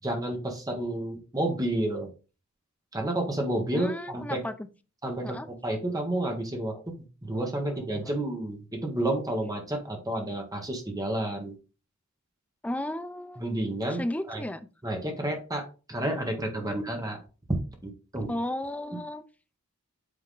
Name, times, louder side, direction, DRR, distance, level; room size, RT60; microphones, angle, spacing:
voice 1, 0.0-2.1 2.9-4.4 5.0-5.4 5.6-6.7 7.2-11.5 13.4-14.0 14.3-14.4 14.8-17.2 17.8-18.3, right 1 dB, 15° right, 1.4 m, -30 dB
voice 2, 3.7-4.7 5.2-5.5 6.7-6.8 7.7-8.2 12.6-13.5 13.9-14.7 16.6-16.8 18.3-19.2, left 1 dB, 5° left, 0.4 m, -34 dB
8.4 x 3.5 x 3.7 m
head